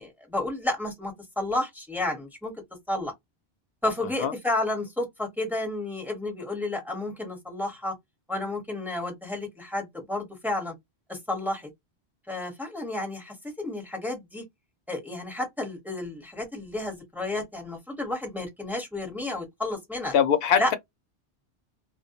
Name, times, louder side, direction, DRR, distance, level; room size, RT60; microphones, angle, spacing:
voice 1, 0.0-2.5 2.9-3.1 3.8-7.9 8.3-10.7 11.1-11.7 12.3-14.4 14.9-20.1 20.6-20.7, left 2 dB, ahead, 0.8 m, -31 dB
voice 2, 20.1-20.7, left 8 dB, 70° left, 0.8 m, -22 dB
2.1 x 2.1 x 2.8 m
omnidirectional pair, 1.1 m